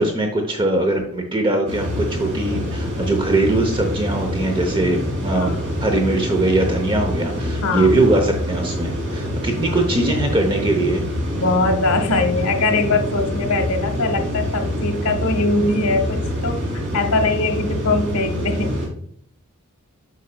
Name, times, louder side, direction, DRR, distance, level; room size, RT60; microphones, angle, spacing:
voice 1, 0.0-5.5 5.8-11.0, right 2 dB, 20° right, 3 dB, 0.8 m, -21 dB
sound 1, 1.7-18.9, equal, 55° right, 2.9 m, -25 dB
voice 2, 5.3-5.7 7.6-7.9 9.6-9.8 11.4-18.7, left 3 dB, 90° left, 6 dB, 1.0 m, -22 dB
8.4 x 6.4 x 2.3 m, 0.66 s
head